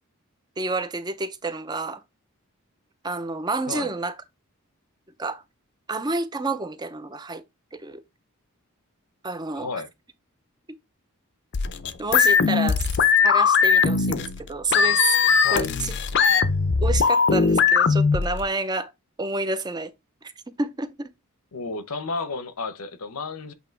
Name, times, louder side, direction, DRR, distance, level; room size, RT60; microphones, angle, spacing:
voice 1, 0.6-2.0 3.0-4.2 5.2-5.4 5.9-7.4 7.7-8.0 9.2-9.7 10.7-10.8 12.0-12.9 13.2-15.2 15.5-15.9 16.8-18.9 19.2-19.9 20.2-20.3 20.6-21.1, right 3 dB, 20° right, 0.5 m, -29 dB
voice 2, 9.5-9.9 15.4-15.7 21.5-23.5, left 4 dB, 80° left, 0.8 m, -32 dB
sound 1, 11.5-18.5, left 6 dB, 50° left, 0.6 m, -20 dB
8.1 x 2.8 x 4.6 m
head